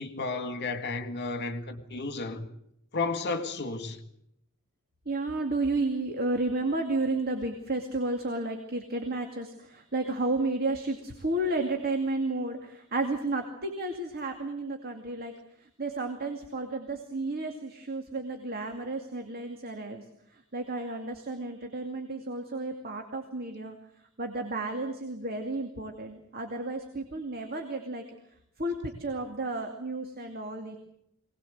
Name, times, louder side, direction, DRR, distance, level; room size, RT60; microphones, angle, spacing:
voice 1, 0.0-2.5 2.9-4.0, left 3 dB, 50° left, 1.9 m, -32 dB
voice 2, 5.1-15.3 15.6-20.0 20.3-23.8 24.2-28.0 28.6-30.8, right 2 dB, 45° right, 2.4 m, -32 dB
24.0 x 19.0 x 7.9 m
head